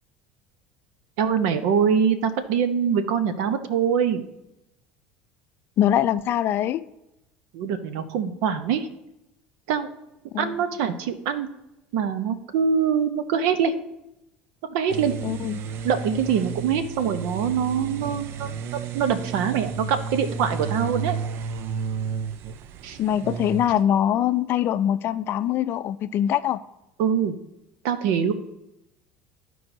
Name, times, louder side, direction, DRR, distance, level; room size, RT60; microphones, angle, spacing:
voice 1, 1.2-4.2 7.5-8.9 9.7-9.9 10.4-11.5 11.9-13.7 14.7-15.1 15.8-18.5 18.9-21.2 22.8-23.0 27.0-27.4 27.8-28.3, right 7 dB, 75° right, 10 dB, 0.8 m, -24 dB
voice 2, 5.8-6.8 10.3-10.6 15.2-15.6 23.0-26.6, left 10 dB, 55° left, 14 dB, 0.4 m, -23 dB
sound 1, 14.9-23.8, right 6 dB, 60° right, 0.4 m, -32 dB
14.0 x 4.6 x 2.7 m, 0.89 s
hypercardioid pair, 80°, 5 cm